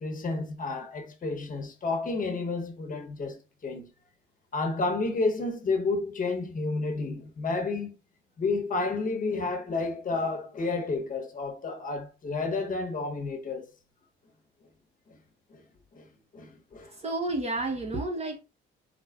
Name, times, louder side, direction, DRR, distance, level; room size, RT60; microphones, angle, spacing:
voice 1, 0.0-3.9 4.5-8.0 8.4-13.7 15.1-15.2 15.5-15.6 15.9-16.0 16.3-16.9, left 3 dB, 40° left, 1.0 m, -31 dB
voice 2, 16.9-18.4, right 2 dB, 30° right, 1.0 m, -31 dB
4.4 x 2.2 x 2.4 m
cardioid pair, 90°, 20 cm